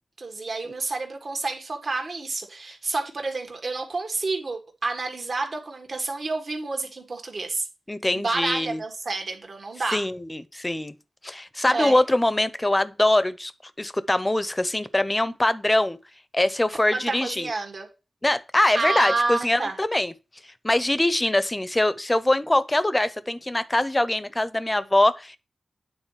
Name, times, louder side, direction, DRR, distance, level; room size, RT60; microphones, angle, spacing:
voice 1, 0.2-7.7 8.1-10.0 11.7-12.0 16.9-17.9 18.7-19.7, right 3 dB, 60° right, 1.8 m, -29 dB
voice 2, 7.9-8.8 9.9-10.9 11.2-13.5 13.8-16.0 16.3-17.5 18.2-20.1 20.6-25.4, left 1 dB, 20° left, 0.7 m, -23 dB
9.1 x 4.0 x 4.7 m
cardioid pair, 55°, 0 cm